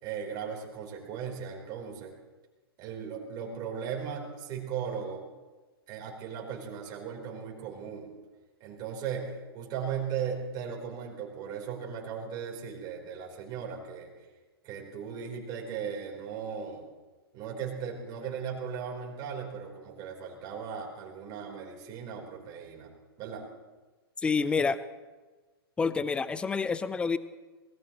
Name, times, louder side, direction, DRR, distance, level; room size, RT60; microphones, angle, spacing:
voice 1, 0.0-2.1 2.8-5.2 5.9-8.1 8.6-14.1 14.6-16.8 17.3-22.9 23.2-23.5, right 7 dB, 30° right, -1 dB, 3.8 m, -37 dB
voice 2, 24.2-24.8 25.8-27.2, left 5 dB, 10° left, 16 dB, 0.5 m, -28 dB
24.0 x 19.0 x 3.0 m, 1.3 s
figure-of-eight pair, 115°, 13 cm